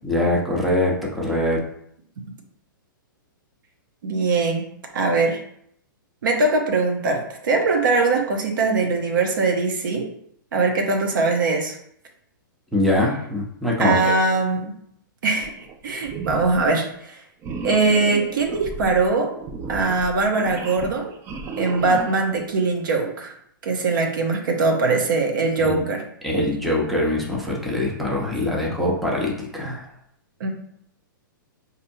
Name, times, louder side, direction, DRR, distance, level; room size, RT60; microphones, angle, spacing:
voice 1, 0.0-1.6 12.7-14.1 25.6-25.8 26.2-29.8, left 1 dB, ahead, -3 dB, 0.7 m, -23 dB
voice 2, 4.0-4.6 4.9-5.4 6.2-10.1 10.5-11.8 13.8-14.7 15.2-15.5 15.8-17.2 17.6-19.3 19.7-21.1 21.6-23.3 23.6-26.0 30.4-30.5, right 3 dB, 70° right, 2 dB, 0.8 m, -21 dB
sound 1, 15.4-16.7 17.4-22.4, right 4 dB, 25° right, 0.3 m, -34 dB
4.2 x 2.7 x 2.7 m, 0.71 s
hypercardioid pair, 125°, 11 cm